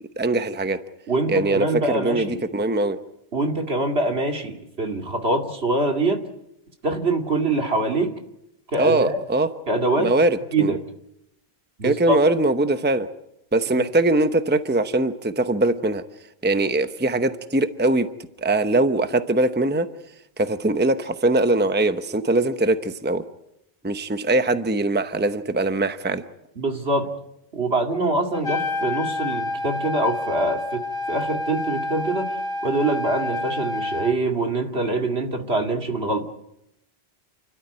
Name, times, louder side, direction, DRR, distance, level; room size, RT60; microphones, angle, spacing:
voice 1, 0.2-0.8 1.3-3.0 8.7-9.5 10.0-10.8 11.8-13.1 13.5-16.0 16.4-18.1 18.4-19.9 20.4-23.2 23.8-26.2, right 2 dB, 10° right, 10 dB, 0.8 m, -21 dB
voice 2, 1.1-2.4 3.3-6.2 6.8-8.1 8.7-9.2 9.7-10.1 10.5-10.8 11.8-12.2 26.6-27.1 27.5-30.8 31.1-32.3 32.6-36.3, right 2 dB, 70° right, 3 dB, 2.7 m, -24 dB
Trumpet, 28.3-34.1, left 2 dB, 60° left, 1.9 m, -28 dB
29.5 x 12.5 x 9.8 m, 0.84 s
omnidirectional pair, 1.1 m